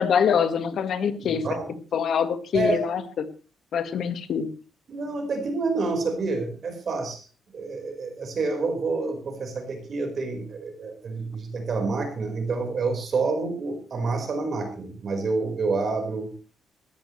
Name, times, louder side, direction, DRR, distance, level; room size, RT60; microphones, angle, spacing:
voice 1, 0.0-1.4 1.9-3.2 3.7-4.5, left 7 dB, 55° left, 10 dB, 1.7 m, -24 dB
voice 2, 1.2-1.7 2.5-2.8 4.9-7.2 7.5-16.3, right 3 dB, 40° right, 4 dB, 4.8 m, -28 dB
19.5 x 15.0 x 3.3 m, 0.35 s
cardioid pair, 160°, 0 cm